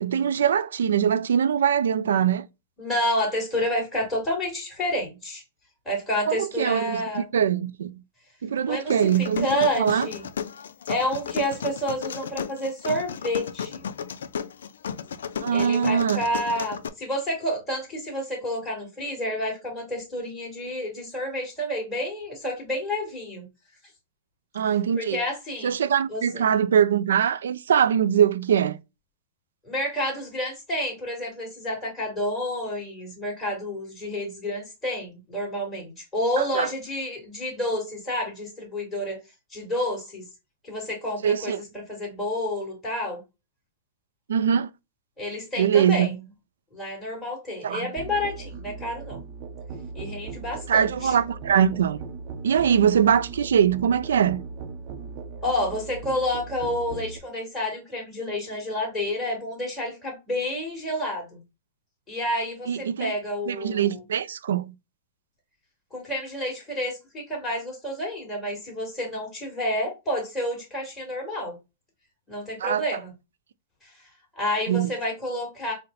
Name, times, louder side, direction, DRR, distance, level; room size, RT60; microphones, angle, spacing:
voice 1, 0.0-2.5 6.3-8.0 8.4-10.1 15.4-16.2 24.5-25.2 25.6-28.8 36.4-36.7 41.2-41.6 44.3-44.7 45.6-46.2 47.6-47.9 50.7-52.0 52.4-54.4 62.7-63.1 63.5-64.7 72.6-72.8 74.7-74.9, right 8 dB, 85° right, 0.3 m, -22 dB
voice 2, 2.8-5.4 5.9-7.3 8.7-10.3 10.9-13.8 15.5-23.4 25.0-25.7 26.1-26.5 29.6-39.2 39.5-40.2 40.6-41.5 41.9-43.2 45.2-46.1 46.7-49.2 49.9-51.1 55.4-61.4 62.1-64.0 65.9-71.5 72.3-73.1 73.8-73.9 74.4-75.7, left 1 dB, 15° left, 2.2 m, -29 dB
sound 1, 8.9-16.9, left 7 dB, 85° left, 0.3 m, -34 dB
Musical instrument, 48.0-57.2, right 5 dB, 40° right, 0.6 m, -38 dB
4.1 x 2.1 x 3.8 m
hypercardioid pair, 140°, 0 cm